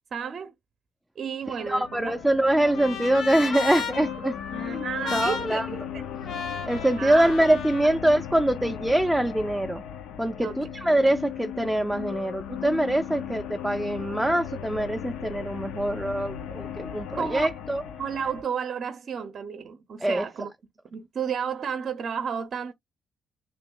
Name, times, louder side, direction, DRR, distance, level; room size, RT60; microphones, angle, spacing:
voice 1, 0.1-0.5 1.2-2.2 4.5-6.0 7.0-7.3 10.4-10.6 17.1-17.5 18.0-20.5 20.9-22.7, right 7 dB, 55° right, 0.5 m, -32 dB
sound 1, 1.4-18.4, left 9 dB, 90° left, 0.5 m, -37 dB
voice 2, 1.5-4.4 4.6-4.9 5.1-5.7 6.6-9.8 10.2-17.8 20.0-20.3, right 1 dB, 5° right, 0.3 m, -24 dB
Trumpet, 1.6-7.9, left 5 dB, 75° left, 1.0 m, -35 dB
3.0 x 2.2 x 3.6 m
cardioid pair, 90°, 0 cm